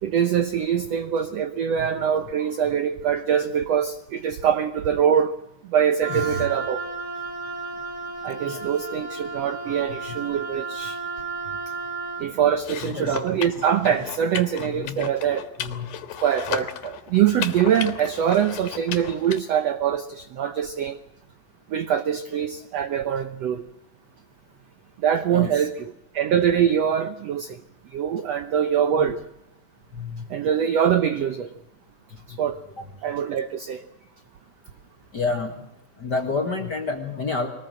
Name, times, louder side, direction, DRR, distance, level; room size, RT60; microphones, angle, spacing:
voice 1, 0.0-5.3 5.7-6.8 8.2-11.0 12.2-15.5 16.2-21.0 21.7-23.6 25.0-27.6 27.9-29.2 30.3-31.5 32.3-32.6 33.0-33.8, right 9 dB, 85° right, 1.4 m, -23 dB
Wind instrument woodwind instrument, 6.0-12.3, right 3 dB, 10° right, 3.3 m, -33 dB
voice 2, 6.1-6.5 8.4-8.6 9.7-9.8 10.1-10.2 12.8-13.2 13.9-14.0 14.6-15.1 15.6-15.9 25.3-25.7 29.0-29.1 29.9-30.2 32.3-32.4 35.1-35.6 36.0-37.5, left 4 dB, 40° left, 1.6 m, -29 dB
sound 1, 12.6-19.4, left 10 dB, 75° left, 3.1 m, -35 dB
22.5 x 19.5 x 7.7 m
omnidirectional pair, 4.3 m